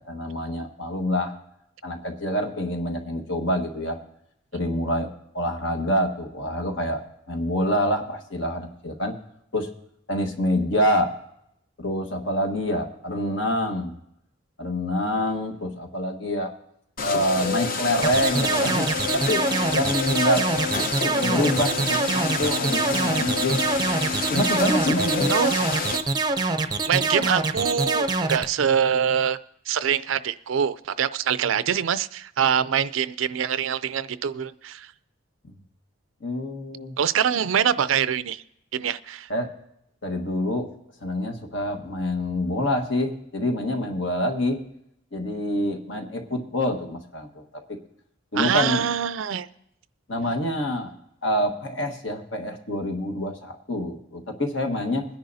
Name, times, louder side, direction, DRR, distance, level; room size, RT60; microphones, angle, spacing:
voice 1, 0.1-1.3 1.8-4.0 4.5-5.1 5.3-7.0 7.3-9.2 9.5-9.7 10.1-11.1 11.8-14.0 14.6-16.5 17.0-18.9 19.1-19.5 19.7-20.5 21.0-23.9 24.3-25.3 36.2-36.9 39.3-39.5 40.0-40.7 41.0-44.6 45.1-47.4 47.7-47.8 48.3-48.8 50.1-50.9 51.2-55.1, left 1 dB, 70° left, 4 dB, 1.5 m, -26 dB
sound 1, 17.0-26.0, left 4 dB, 45° left, 0.9 m, -28 dB
sound 2, 18.0-28.4, right 3 dB, 20° right, 0.5 m, -24 dB
voice 2, 25.3-26.0 26.9-29.4 29.7-34.9 37.0-38.4 38.7-39.3 48.4-49.5, right 8 dB, 80° right, 14 dB, 0.4 m, -24 dB
21.5 x 10.5 x 2.7 m, 0.78 s
head